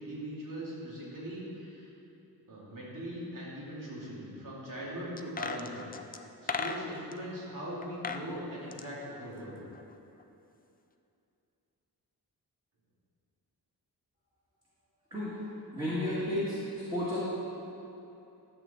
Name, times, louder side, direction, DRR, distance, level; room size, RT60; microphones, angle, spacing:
voice 1, 0.0-1.9 2.5-5.8 6.6-9.6, equal, 55° right, -7 dB, 2.8 m, -40 dB
sound 1, 5.2-7.2 7.8-8.3 8.6-9.9 10.2-10.3, left 4 dB, 25° left, 0.4 m, -37 dB
voice 2, 15.7-16.6 16.9-17.2, left 1 dB, 10° right, -11 dB, 2.3 m, -32 dB
13.0 x 7.8 x 4.5 m, 2.8 s
wide cardioid pair, 155°, 40 cm